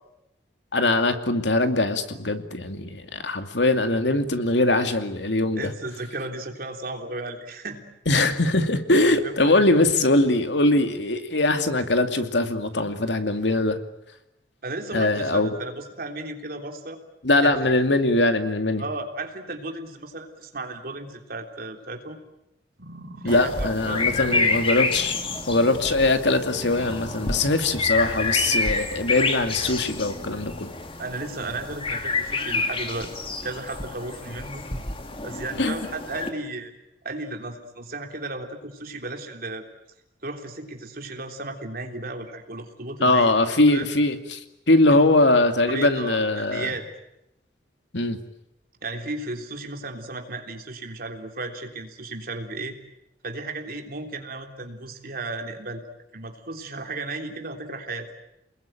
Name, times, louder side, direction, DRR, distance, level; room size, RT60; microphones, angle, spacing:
voice 1, 0.7-5.7 8.1-13.8 14.9-15.5 17.2-18.8 23.2-25.2 25.5-30.7 35.6-35.8 43.0-46.7 47.9-48.2, left 2 dB, 80° left, 7 dB, 2.5 m, -21 dB
voice 2, 5.6-7.8 9.0-9.7 14.6-17.0 17.4-17.7 18.8-22.2 23.2-24.8 31.0-33.1 33.4-34.6 35.2-36.7 37.0-39.7 40.2-43.9 45.7-46.9 48.8-52.8 53.2-55.8 56.1-58.1, right 2 dB, 55° right, 4 dB, 3.5 m, -34 dB
sound 1, 22.8-25.9 26.3-27.3 27.8-27.9, right 1 dB, 80° right, 4.7 m, -42 dB
sound 2, 23.3-36.3, left 3 dB, 30° left, 2.5 m, -28 dB
30.0 x 21.0 x 9.2 m, 0.86 s
head